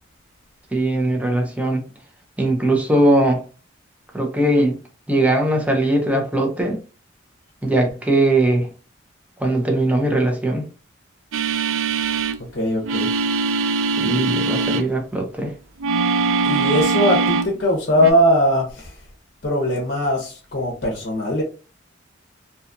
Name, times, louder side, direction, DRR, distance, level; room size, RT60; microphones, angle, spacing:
voice 1, 0.7-1.8 2.4-3.4 4.1-4.8 5.1-6.8 7.6-8.7 9.4-10.6 14.0-15.5, right 1 dB, 5° right, 0.5 m, -20 dB
sound 1, 11.3-12.4 12.8-14.9 15.8-17.5 18.0-18.1, right 4 dB, 80° right, 0.4 m, -21 dB
voice 2, 12.4-13.1 16.4-19.0 19.4-21.4, equal, 55° left, 0.7 m, -20 dB
2.7 x 2.3 x 2.5 m
head